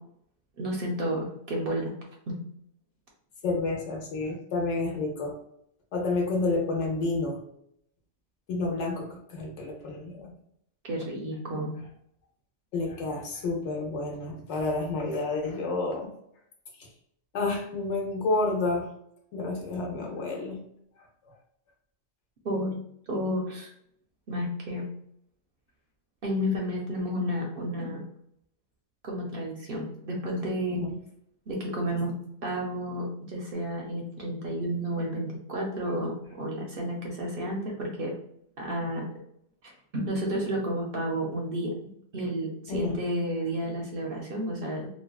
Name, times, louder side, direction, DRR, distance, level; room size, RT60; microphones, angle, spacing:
voice 1, 0.6-1.9 2.3-2.4 10.9-11.7 22.4-22.8 23.1-23.7 24.3-24.8 26.2-28.0 29.0-30.8 31.5-32.1 32.4-38.2 38.6-39.1 39.6-44.9, equal, 55° right, -1 dB, 0.7 m, -31 dB
voice 2, 3.4-5.3 5.9-7.4 8.5-10.3 12.7-16.1 17.3-18.9 19.3-20.6 30.8-30.9 42.7-43.0, left 3 dB, 70° left, 0 dB, 1.0 m, -30 dB
3.2 x 2.2 x 2.3 m, 0.72 s
omnidirectional pair, 1.3 m